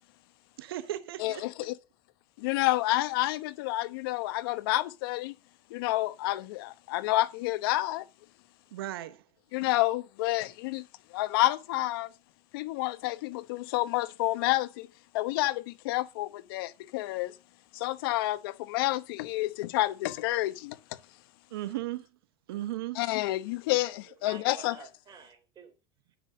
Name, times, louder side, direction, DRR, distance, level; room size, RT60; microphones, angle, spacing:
voice 1, 0.6-1.4 8.7-9.2 21.5-22.1 22.5-23.0, right 14 dB, 90° right, 0.8 m, -36 dB
voice 2, 1.2-1.7 2.4-5.3 5.7-8.0 9.5-10.8 11.1-12.1 12.5-14.9 15.1-17.3 17.7-20.8 23.0-24.7, left 17 dB, 80° left, 0.9 m, -29 dB
voice 3, 23.8-25.8 26.1-26.2, right 6 dB, 35° right, 3.4 m, -50 dB
10.5 x 6.1 x 6.4 m
supercardioid pair, 115°, 12 cm